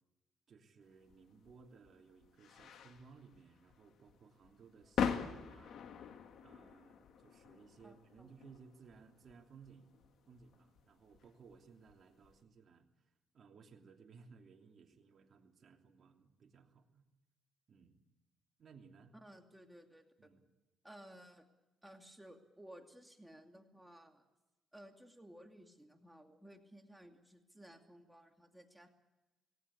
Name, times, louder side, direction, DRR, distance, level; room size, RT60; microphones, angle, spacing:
voice 1, 0.5-5.8 6.4-10.0 10.3-17.0 17.7-18.0 18.6-19.1 20.2-20.4, right 5 dB, 50° right, 2 dB, 3.0 m, -60 dB
sound 1, 1.1-12.4, left 7 dB, 70° left, 1.8 m, -44 dB
voice 2, 7.8-8.3 19.1-20.0 20.8-21.4 21.8-24.2 24.7-28.9, right 1 dB, 5° right, 3 dB, 2.6 m, -57 dB
19.0 x 18.0 x 8.4 m, 1.1 s
cardioid pair, 90°, 0 cm